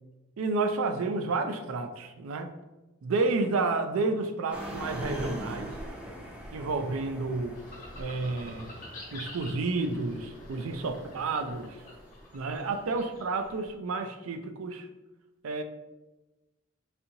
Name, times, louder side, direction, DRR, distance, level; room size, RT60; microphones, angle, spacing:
voice 1, 0.4-2.5 3.0-5.8 6.5-7.6 8.0-8.7 9.1-11.8 12.3-14.9 15.4-15.6, right 3 dB, 90° right, 7 dB, 0.4 m, -30 dB
sound 1, 4.5-13.7, equal, 5° right, 0.5 m, -43 dB
sound 2, 7.5-13.4, left 2 dB, 40° left, 1.0 m, -48 dB
4.2 x 2.6 x 2.6 m, 1.1 s
head